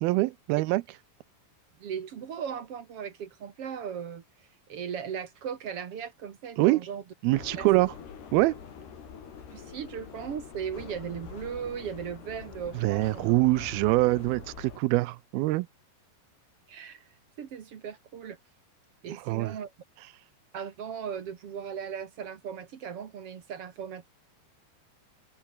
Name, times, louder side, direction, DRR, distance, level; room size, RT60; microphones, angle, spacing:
voice 1, 0.0-0.8 6.6-6.8 7.2-7.9 8.3-8.6 12.8-15.7 19.1-19.6, right 20 dB, 85° right, 2.3 m, -24 dB
voice 2, 1.8-4.2 4.7-7.0 7.6-7.7 9.5-13.3 16.7-17.1 17.4-18.4 19.0-19.7 20.5-24.1, right 7 dB, 55° right, 1.7 m, -37 dB
sound 1, 7.3-14.8, left 7 dB, 70° left, 6.1 m, -45 dB
omnidirectional pair, 4.9 m